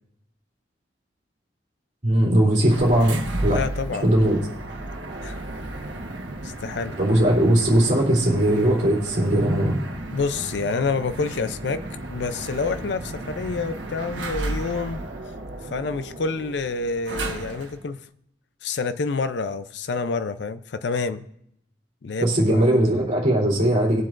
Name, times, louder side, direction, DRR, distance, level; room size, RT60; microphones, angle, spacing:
voice 1, 2.0-3.6 4.0-4.4 7.0-9.8 22.2-24.0, right 1 dB, 45° right, -4 dB, 3.0 m, -19 dB
sound 1, 2.6-17.8, right 2 dB, 90° right, 1.2 m, -34 dB
voice 2, 3.5-4.2 5.2-5.4 6.4-7.0 10.1-11.8 12.1-15.0 15.7-18.0 18.6-21.3 22.0-22.6, left 4 dB, 70° left, 11 dB, 0.5 m, -28 dB
20.0 x 7.5 x 2.5 m, 0.75 s
head